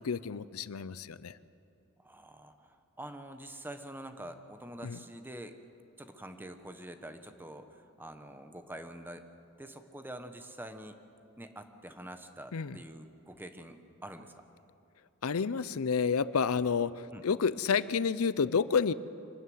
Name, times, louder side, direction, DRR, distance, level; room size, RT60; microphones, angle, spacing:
voice 1, 0.0-1.4 4.8-5.0 12.5-12.8 15.2-16.9 17.2-18.9, left 6 dB, 90° left, 17 dB, 0.6 m, -29 dB
voice 2, 2.0-5.6 6.0-9.2 9.6-11.0 11.4-14.4 17.1-17.2, right 1 dB, 10° right, 8 dB, 1.1 m, -46 dB
24.5 x 12.5 x 9.4 m, 2.7 s
head